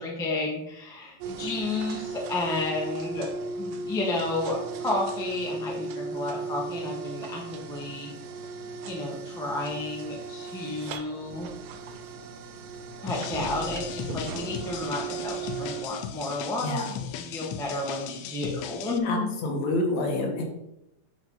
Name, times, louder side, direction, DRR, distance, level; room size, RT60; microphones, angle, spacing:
voice 1, 0.0-3.3 3.6-8.1 8.8-11.5 13.0-16.8 17.2-19.3, left 2 dB, 5° left, -2 dB, 0.3 m, -31 dB
sound 1, 1.2-15.9, right 4 dB, 85° right, 2.3 m, -36 dB
sound 2, 13.1-19.0, left 10 dB, 85° left, 1.6 m, -38 dB
voice 2, 19.0-20.4, left 2 dB, 65° left, 2 dB, 2.5 m, -27 dB
10.0 x 4.8 x 4.0 m, 0.84 s
omnidirectional pair, 3.6 m